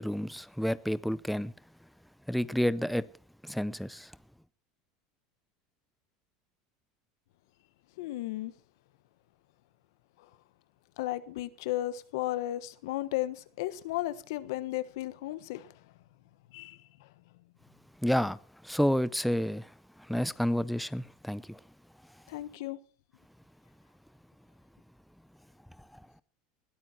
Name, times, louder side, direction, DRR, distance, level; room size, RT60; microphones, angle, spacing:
voice 1, 0.0-1.5 2.3-3.0 3.4-4.1 18.0-18.4 18.6-19.7 20.1-21.6, equal, ahead, 0.6 m, -29 dB
voice 2, 8.0-8.5 10.2-10.3 11.0-15.8 16.5-17.1 22.3-22.8, left 15 dB, 80° left, 1.3 m, -35 dB
20.5 x 12.5 x 4.4 m
supercardioid pair, 120°, 2 cm